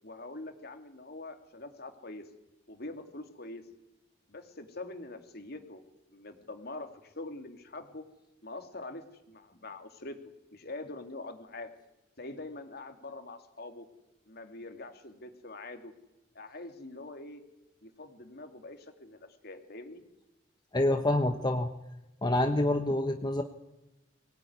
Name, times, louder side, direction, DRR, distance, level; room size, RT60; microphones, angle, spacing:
voice 1, 0.0-2.2 2.7-3.6 4.3-5.8 6.1-8.1 8.4-10.2 10.5-11.7 12.2-13.9 14.3-15.9 16.3-17.4 17.8-20.0, left 2 dB, 55° left, 6 dB, 2.8 m, -44 dB
voice 2, 20.7-21.7 22.2-23.4, left 1 dB, 25° left, 6 dB, 1.2 m, -27 dB
23.5 x 18.0 x 9.7 m, 1.0 s
head